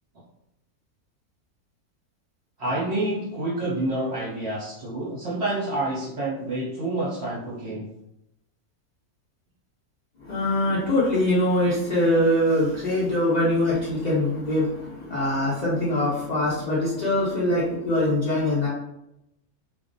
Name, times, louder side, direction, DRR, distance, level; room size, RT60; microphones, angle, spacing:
voice 1, 2.6-7.9, right 2 dB, 65° right, -6 dB, 0.6 m, -28 dB
voice 2, 10.2-18.7, left 1 dB, 70° left, -8 dB, 0.4 m, -23 dB
2.4 x 2.1 x 2.5 m, 0.84 s
omnidirectional pair, 1.6 m